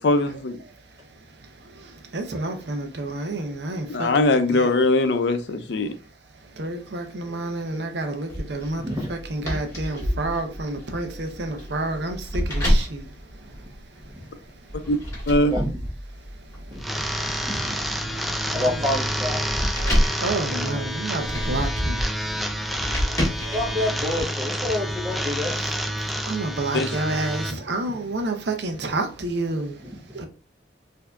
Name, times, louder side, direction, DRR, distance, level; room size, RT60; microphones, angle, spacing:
voice 1, 0.0-0.6 3.9-5.9 14.9-15.0 15.3-15.5 26.7-26.9, left 2 dB, 70° left, 0.5 m, -21 dB
voice 2, 0.6-4.2 4.5-4.7 6.3-14.9 16.2-18.9 19.8-23.6 25.5-30.3, right 2 dB, 65° right, 0.7 m, -31 dB
sound 1, 8.3-14.1 14.7-24.2, equal, 20° left, 1.6 m, -28 dB
voice 3, 16.7-19.4 23.5-25.6 29.8-30.2, left 1 dB, 25° right, 1.1 m, -29 dB
sound 2, 16.8-27.5, equal, ahead, 0.4 m, -29 dB
4.5 x 2.7 x 2.3 m
head